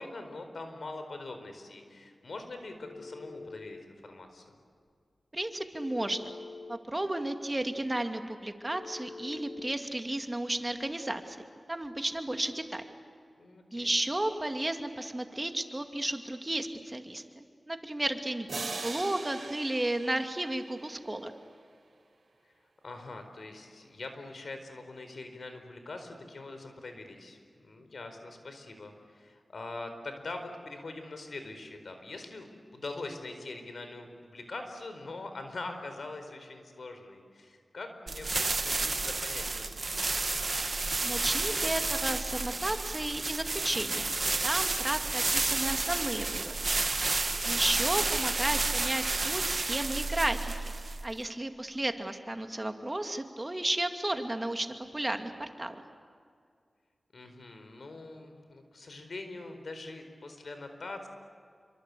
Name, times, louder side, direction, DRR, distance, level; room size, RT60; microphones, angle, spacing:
voice 1, 0.0-4.6 13.4-13.9 22.8-39.9 47.2-47.8 57.1-61.1, left 2 dB, 70° left, 7 dB, 4.4 m, -43 dB
Telephone, 2.8-3.8 5.8-6.8 8.7-9.7, left 3 dB, 50° left, 2.3 m, -45 dB
voice 2, 5.3-6.3 6.7-12.9 13.7-21.3 41.0-44.1 44.4-46.7 47.5-50.5 51.0-54.7 54.9-55.8, right 1 dB, 25° right, 6 dB, 2.3 m, -33 dB
sound 1, 18.5-21.2, right 3 dB, 70° right, 4.4 m, -40 dB
sound 2, 38.1-51.2, right 3 dB, 55° right, 1.5 m, -31 dB
28.5 x 24.5 x 8.5 m, 2.2 s
wide cardioid pair, 65°, 0 cm